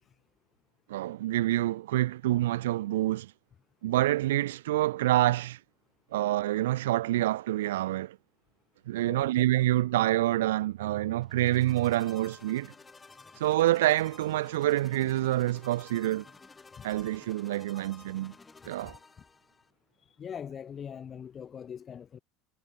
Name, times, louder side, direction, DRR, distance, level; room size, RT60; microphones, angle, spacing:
voice 1, 0.9-3.3 3.8-5.6 6.1-8.2 8.9-12.7 13.4-16.3 16.8-18.3 18.6-19.0, right 15 dB, 80° right, 0.7 m, -27 dB
sound 1, 11.2-19.7, left 4 dB, 20° left, 2.3 m, -53 dB
voice 2, 20.1-22.2, left 8 dB, 35° left, 1.9 m, -41 dB
hypercardioid pair, 90°, 0 cm